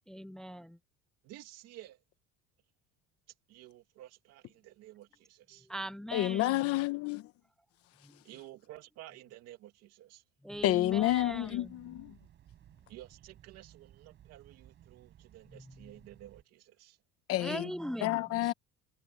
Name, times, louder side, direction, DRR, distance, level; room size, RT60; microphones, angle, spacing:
voice 1, 0.1-0.8 5.5-6.6 8.0-8.2 10.4-12.0 15.5-15.9 17.4-18.5, right 1 dB, ahead, 0.5 m, -41 dB
voice 2, 1.2-2.0 3.5-5.7 8.2-10.2 12.9-17.0, right 15 dB, 55° right, 2.7 m, -52 dB
voice 3, 6.1-7.3 10.6-12.2 17.3-17.7 18.0-18.5, left 15 dB, 50° left, 1.2 m, -29 dB
sound 1, 10.5-16.4, right 11 dB, 35° right, 5.2 m, -59 dB
cardioid pair, 175°, 30 cm